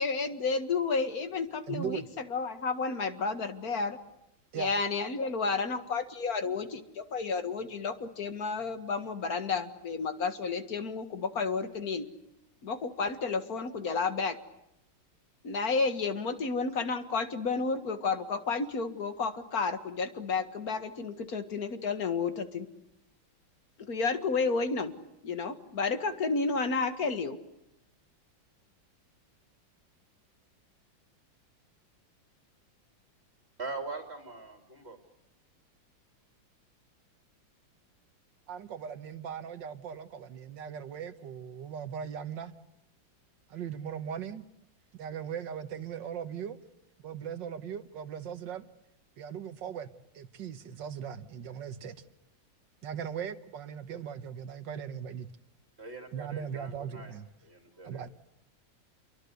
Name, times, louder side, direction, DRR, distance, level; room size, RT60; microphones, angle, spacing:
voice 1, 0.0-4.0 4.5-12.1 12.6-14.4 15.4-22.7 23.9-24.9 25.2-27.4, left 4 dB, 50° left, 10 dB, 2.2 m, -31 dB
voice 2, 1.7-2.1 4.5-4.7 38.5-42.5 43.5-44.4 44.9-46.6 47.0-48.7 49.2-49.9 50.1-52.0 52.8-55.3 56.1-57.3 57.8-58.1, right 8 dB, 70° right, 12 dB, 1.8 m, -39 dB
voice 3, 33.6-35.0 55.8-57.1 57.4-58.0, right 3 dB, 30° right, 5 dB, 3.2 m, -42 dB
29.0 x 23.0 x 8.1 m, 0.85 s
omnidirectional pair, 2.1 m